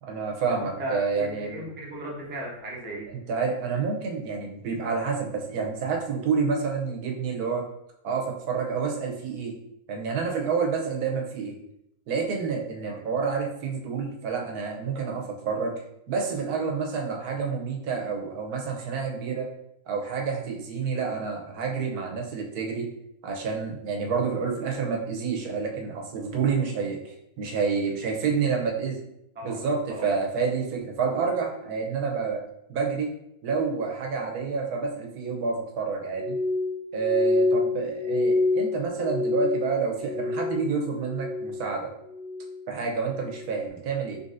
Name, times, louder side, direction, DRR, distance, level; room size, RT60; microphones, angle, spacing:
voice 1, 0.0-1.6 3.3-7.6 8.0-9.5 9.9-11.6 12.1-15.7 16.1-19.5 19.9-22.9 23.2-27.0 27.4-29.0 29.4-32.4 32.7-33.1 33.4-36.4 36.9-41.9 42.7-44.2, right 5 dB, 80° right, 2 dB, 1.2 m, -28 dB
voice 2, 0.6-3.1 12.8-13.0 28.0-28.6 29.3-29.6 29.9-30.1, right 1 dB, 10° right, -3 dB, 0.5 m, -36 dB
Glass, 36.2-40.8 41.0-41.7 42.1-42.6 43.2-43.5, left 3 dB, 90° left, 1.5 m, -27 dB
4.0 x 3.5 x 2.5 m, 0.78 s
omnidirectional pair, 1.6 m